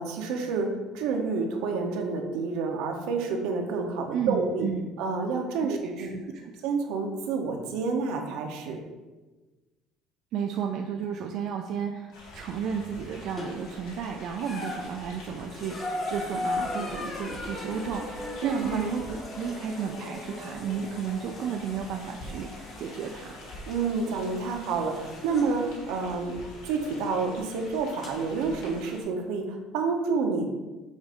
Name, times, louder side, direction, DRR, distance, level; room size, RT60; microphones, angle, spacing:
voice 1, 0.0-4.7 5.0-6.1 6.6-8.8 18.4-18.9 23.7-26.4 26.6-30.5, right 4 dB, 80° right, 2 dB, 0.9 m, -29 dB
voice 2, 4.1-4.9 5.6-6.4 10.3-23.4, right 7 dB, 55° right, 2 dB, 0.4 m, -33 dB
sound 1, 12.1-29.0, left 1 dB, 80° left, 1.8 m, -46 dB
sound 2, 13.4-13.8 14.3-25.5 26.7-26.8 28.0-28.1, left 2 dB, 25° left, 1.0 m, -38 dB
7.2 x 2.7 x 5.0 m, 1.2 s
cardioid pair, 150°, 0 cm